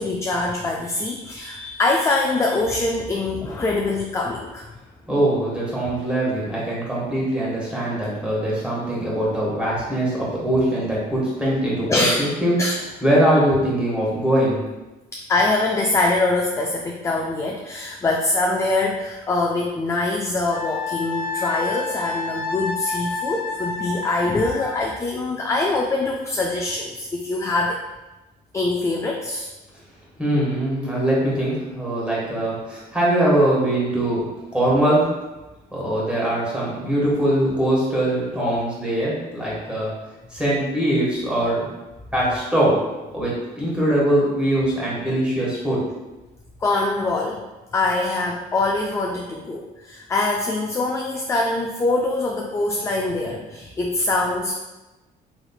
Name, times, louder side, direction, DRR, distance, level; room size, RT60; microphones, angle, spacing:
voice 1, 0.0-4.7 11.9-12.2 12.6-12.8 15.1-27.8 28.5-29.5 38.4-38.6 46.6-47.4 47.7-54.5, left 2 dB, 15° left, 0 dB, 0.3 m, -23 dB
voice 2, 5.1-12.5 13.0-14.6 30.2-35.1 35.7-39.9 40.3-41.6 42.1-42.8 43.1-45.8, right 1 dB, 5° right, -6 dB, 1.4 m, -22 dB
Wind instrument woodwind instrument, 20.5-24.9, left 4 dB, 70° left, 0.8 m, -29 dB
4.1 x 3.0 x 2.3 m, 1.1 s
cardioid pair, 110°, 17 cm